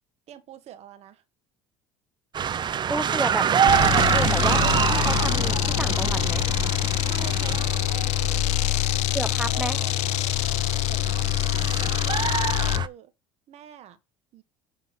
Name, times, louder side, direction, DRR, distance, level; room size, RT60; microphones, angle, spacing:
voice 1, 0.3-1.2 7.0-8.9 9.5-9.9 10.9-12.1 12.6-13.1 13.5-14.0 14.3-14.4, right 10 dB, 55° right, 1.6 m, -44 dB
sound 1, 2.3-12.9, right 8 dB, 35° right, 0.7 m, -26 dB
voice 2, 2.9-3.5 4.1-6.5 9.1-9.8, right 2 dB, 5° right, 0.8 m, -31 dB
sound 2, 3.7-12.9, left 18 dB, 60° left, 0.4 m, -25 dB
9.8 x 3.7 x 6.5 m
supercardioid pair, 85°, 13 cm